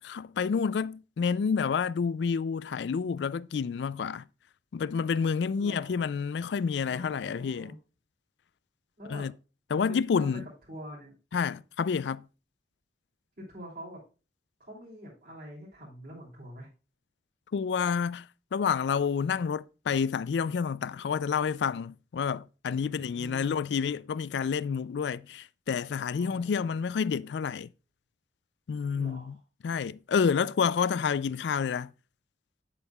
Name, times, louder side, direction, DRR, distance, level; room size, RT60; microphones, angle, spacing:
voice 1, 0.0-4.2 4.7-7.7 9.1-9.3 9.7-10.4 11.3-12.2 17.5-18.2 18.5-27.7 28.7-29.3 29.6-31.9, left 6 dB, 70° left, 0.4 m, -29 dB
voice 2, 5.6-6.1 6.8-7.8 9.0-9.3 9.9-10.3 10.7-11.1 13.4-14.0 14.6-16.7 22.7-23.8 26.2-26.7 28.9-29.4, equal, 55° right, 3.4 m, -45 dB
8.9 x 7.9 x 2.3 m
head